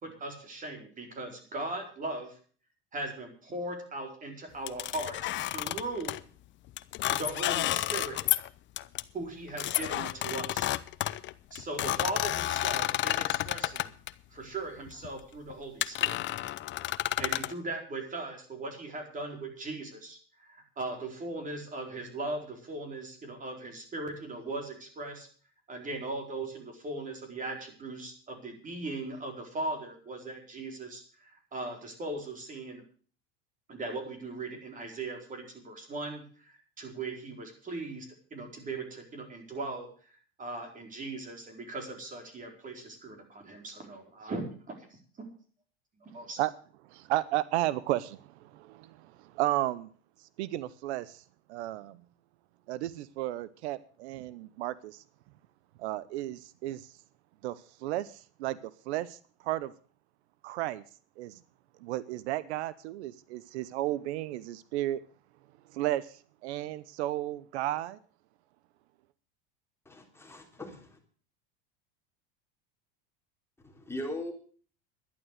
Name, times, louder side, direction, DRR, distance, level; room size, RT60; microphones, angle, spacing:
voice 1, 0.0-2.4 2.9-6.1 7.1-8.2 9.1-10.7 11.5-13.9 14.3-16.2 17.2-25.3 25.7-32.8 33.7-39.9 40.4-44.4 44.9-45.3 46.0-46.4, right 2 dB, 25° right, 4 dB, 4.5 m, -39 dB
sound 1, 4.7-6.2 6.8-8.5 8.8-9.0 9.6-14.1 14.9-15.1 15.5-15.6 15.8-17.5, left 15 dB, 35° left, 0.7 m, -31 dB
voice 2, 46.9-49.1 49.3-49.9 50.4-51.2 51.5-52.0 52.7-55.0 55.8-56.9 57.4-58.1 58.4-58.6 58.9-59.2 59.4-59.7 60.4-60.8 61.2-61.3 61.8-65.0 65.7-66.1 66.4-68.0, right 15 dB, 80° right, 17 dB, 0.8 m, -33 dB
voice 3, 69.9-71.0 73.6-74.3, left 1 dB, 10° left, 2 dB, 3.4 m, -39 dB
12.0 x 11.0 x 6.5 m, 0.43 s
supercardioid pair, 125°, 32 cm